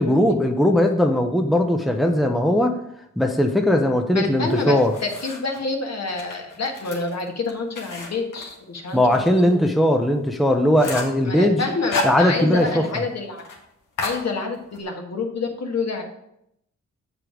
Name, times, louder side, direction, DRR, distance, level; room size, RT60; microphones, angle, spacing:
voice 1, 0.0-2.7 3.2-4.9 8.9-11.6 12.0-12.8, left 1 dB, ahead, 4 dB, 0.7 m, -19 dB
voice 2, 4.1-9.6 11.2-13.4 14.0-16.0, left 3 dB, 55° left, 2 dB, 1.5 m, -27 dB
sound 1, 4.5-5.6 6.1-9.3 9.7-9.8 10.1-10.2 10.5-11.2 11.6-12.7 13.0-13.1 13.4-13.6 14.0-14.8, left 2 dB, 80° left, 1.7 m, -32 dB
7.5 x 5.0 x 5.0 m, 0.78 s
cardioid pair, 80°, 31 cm